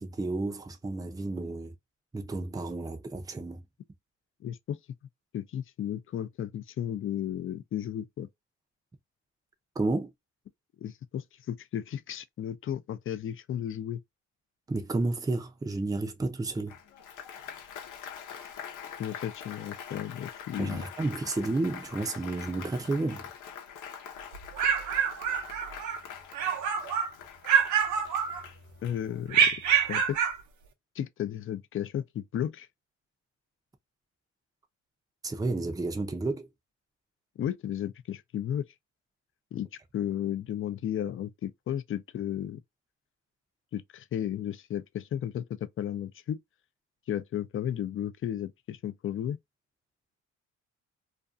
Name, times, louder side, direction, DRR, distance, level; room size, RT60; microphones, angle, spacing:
voice 1, 0.0-1.7 2.1-3.6 9.8-10.1 14.7-16.8 20.6-23.3 35.2-36.5, right 2 dB, 10° right, 0.5 m, -31 dB
voice 2, 4.4-4.8 5.3-8.3 10.8-14.0 19.0-20.8 28.8-29.5 29.9-30.2 31.0-32.7 37.4-38.6 39.5-39.7 39.9-42.6 43.7-46.4 47.1-49.4, left 10 dB, 45° left, 0.4 m, -34 dB
Applause, 16.7-29.4, left 8 dB, 80° left, 0.8 m, -44 dB
sound 1, 24.3-26.0 26.3-27.1 27.4-28.7 29.3-30.4, right 8 dB, 70° right, 0.6 m, -26 dB
2.5 x 2.3 x 2.5 m
cardioid pair, 90°, 30 cm